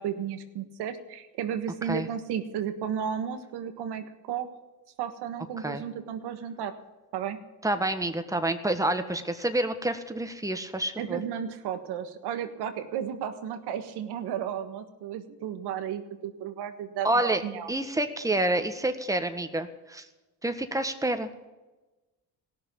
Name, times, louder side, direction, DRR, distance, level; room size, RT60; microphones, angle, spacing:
voice 1, 0.0-4.5 5.0-6.7 7.1-7.4 11.0-17.7, right 8 dB, 80° right, 8 dB, 1.5 m, -33 dB
voice 2, 7.6-11.2 17.0-17.4 17.7-20.0 20.4-21.5, right 1 dB, 10° right, 7 dB, 1.5 m, -28 dB
17.0 x 6.7 x 9.4 m, 1.1 s
supercardioid pair, 70°, 39 cm